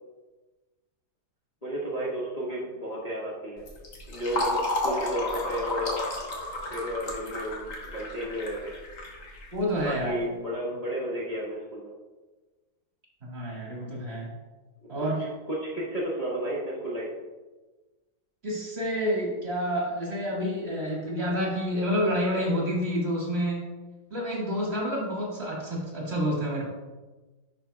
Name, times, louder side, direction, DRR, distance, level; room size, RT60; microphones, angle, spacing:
voice 1, 1.6-3.6 4.1-6.0 6.7-8.7 9.8-11.9 15.0-15.1 15.5-17.0, right 1 dB, 25° left, -7 dB, 1.0 m, -32 dB
Fill (with liquid), 3.6-10.0, left 2 dB, 55° left, 1.5 m, -32 dB
voice 2, 9.5-10.1 13.2-14.3 14.9-15.2 18.4-23.7 24.1-26.6, equal, 40° right, -4 dB, 2.1 m, -28 dB
10.5 x 5.5 x 2.3 m, 1.2 s
omnidirectional pair, 1.8 m